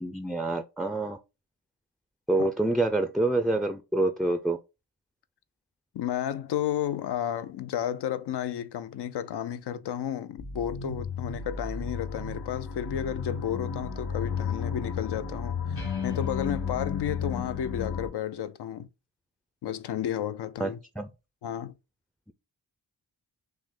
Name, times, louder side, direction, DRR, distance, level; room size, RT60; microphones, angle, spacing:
voice 1, 0.0-1.2 2.3-4.6 20.6-21.1, right 2 dB, ahead, 0.3 m, -27 dB
voice 2, 5.9-18.9 19.6-20.8 21.4-21.7, left 10 dB, 75° left, 0.5 m, -32 dB
sound 1, 10.4-18.1, left 6 dB, 60° left, 2.3 m, -33 dB
6.1 x 2.1 x 3.7 m
cardioid pair, 75°, 41 cm